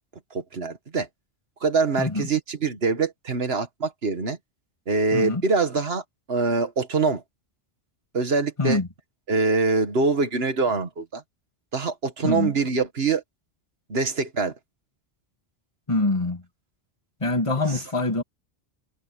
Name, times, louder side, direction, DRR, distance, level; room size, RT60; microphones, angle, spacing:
voice 1, 0.3-1.1 1.6-4.4 4.9-7.2 8.1-8.8 9.3-11.2 11.7-13.2 13.9-14.5, right 4 dB, 65° right, 1.9 m, -24 dB
voice 2, 2.0-2.3 5.1-5.4 8.6-8.9 12.2-12.5 15.9-16.4 17.2-18.2, left 2 dB, 30° left, 2.4 m, -24 dB
omnidirectional pair, 1.1 m